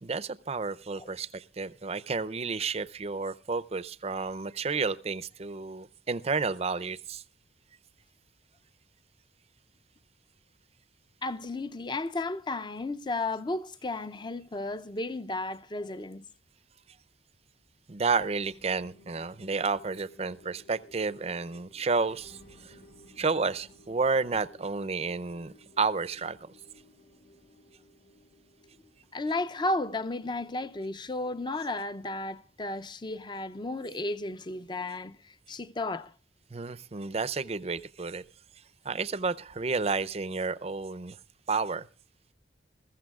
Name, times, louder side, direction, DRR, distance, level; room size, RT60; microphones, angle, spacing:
voice 1, 0.0-7.2 17.9-22.8 23.2-26.4 36.5-38.2 38.8-41.2 41.5-41.9, right 4 dB, 35° right, 0.5 m, -31 dB
voice 2, 11.2-16.3 29.1-36.1, left 2 dB, 25° left, 0.6 m, -33 dB
sound 1, 18.4-33.0, left 1 dB, 75° left, 4.6 m, -58 dB
21.0 x 15.0 x 2.4 m
head